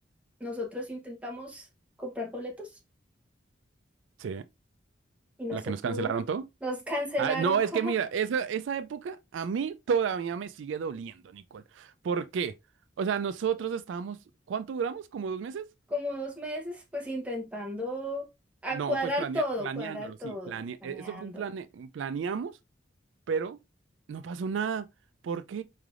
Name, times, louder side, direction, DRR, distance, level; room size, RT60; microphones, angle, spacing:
voice 1, 0.4-1.7 2.0-2.7 5.4-6.1 6.6-7.9 15.9-18.3 18.6-21.4, equal, 5° right, 1.0 m, -34 dB
voice 2, 5.5-6.4 7.2-12.6 13.0-14.2 14.5-15.7 18.7-22.6 23.3-23.6 24.1-24.9 25.2-25.6, right 6 dB, 85° right, 0.3 m, -32 dB
4.6 x 3.3 x 2.4 m
head